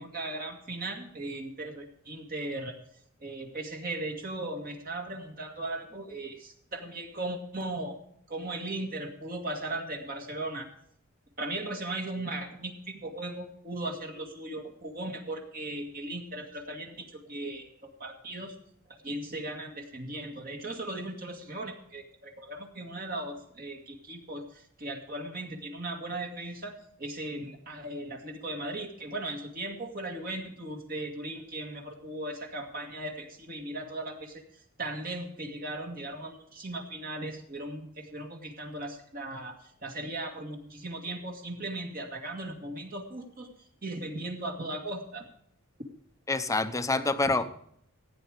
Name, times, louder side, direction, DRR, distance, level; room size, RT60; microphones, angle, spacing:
voice 1, 0.0-2.7 3.2-7.9 8.3-10.7 11.4-17.7 18.0-18.5 18.9-26.7 27.0-34.4 34.8-43.5 43.8-45.2 47.2-47.4, right 2 dB, 40° right, 2 dB, 2.0 m, -37 dB
voice 2, 46.3-47.5, left 3 dB, 15° left, 10 dB, 0.8 m, -27 dB
15.5 x 9.2 x 5.0 m, 0.70 s
head